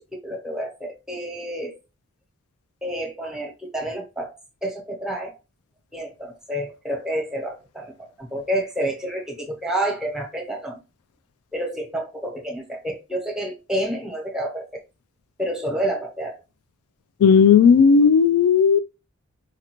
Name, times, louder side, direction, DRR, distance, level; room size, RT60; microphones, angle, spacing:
voice 1, 0.0-1.8 2.8-4.3 4.6-5.4 5.9-10.8 11.5-14.8 15.4-16.4, right 1 dB, 5° right, 0.8 m, -29 dB
voice 2, 17.2-18.8, left 6 dB, 80° left, 0.3 m, -14 dB
5.0 x 2.5 x 2.9 m
head